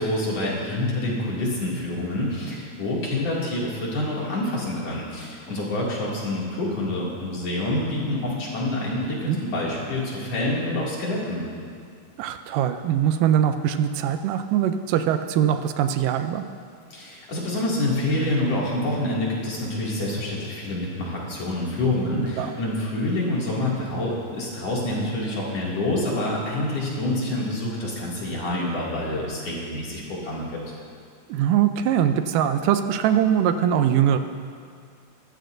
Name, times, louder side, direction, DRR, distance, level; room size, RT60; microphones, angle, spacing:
voice 1, 0.0-11.4 16.9-30.5, left 1 dB, 50° left, -5 dB, 3.3 m, -27 dB
voice 2, 12.2-16.4 22.4-22.5 31.3-34.2, right 9 dB, 85° right, 8 dB, 2.2 m, -22 dB
21.5 x 14.5 x 2.6 m, 2.2 s
omnidirectional pair, 3.8 m